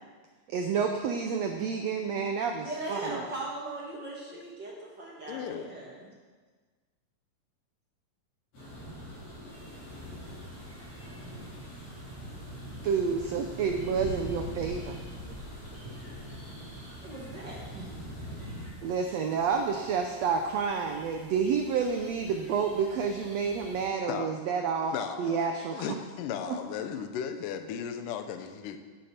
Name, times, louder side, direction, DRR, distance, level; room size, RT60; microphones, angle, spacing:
voice 1, 0.5-3.2 12.8-15.0 18.8-26.0 26.5-26.6, right 6 dB, 90° right, 4 dB, 1.4 m, -29 dB
voice 2, 2.5-6.1 17.0-17.9, right 2 dB, 40° right, -3 dB, 1.8 m, -39 dB
voice 3, 5.3-5.7 24.1-24.3 24.9-25.4 25.7-28.8, left 8 dB, 75° left, 7 dB, 2.3 m, -36 dB
sound 1, 8.5-18.7, equal, 45° left, 5.5 m, -42 dB
sound 2, 9.5-23.9, right 1 dB, 5° left, 3.9 m, -53 dB
12.5 x 10.0 x 4.4 m, 1.4 s
omnidirectional pair, 4.0 m